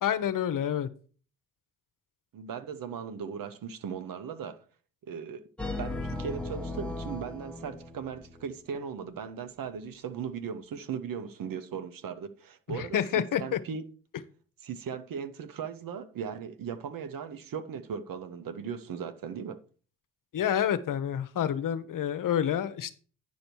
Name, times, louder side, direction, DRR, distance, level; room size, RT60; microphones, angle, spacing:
voice 1, 0.0-0.9 12.8-13.6 20.3-22.9, left 9 dB, 60° left, 0.9 m, -28 dB
voice 2, 2.3-4.6 5.0-5.4 5.8-13.8 14.6-19.6, right 7 dB, 60° right, 1.0 m, -38 dB
sound 1, 5.6-8.5, left 2 dB, 5° left, 1.1 m, -37 dB
9.7 x 5.3 x 4.5 m
supercardioid pair, 65°, 37 cm